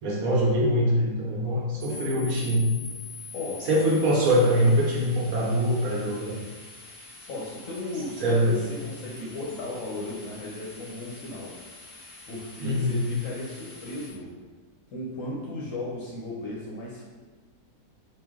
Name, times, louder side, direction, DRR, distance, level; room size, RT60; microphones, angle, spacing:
voice 1, 0.0-2.7 3.6-6.3 8.2-8.6 12.6-13.0, equal, 60° right, -4 dB, 1.1 m, -23 dB
sound 1, 1.8-14.1, left 3 dB, 45° right, 1.0 m, -45 dB
voice 2, 7.3-11.6 12.3-14.3 14.9-17.0, left 2 dB, 60° left, -5 dB, 0.9 m, -35 dB
3.9 x 2.5 x 3.6 m, 1.4 s
omnidirectional pair, 1.8 m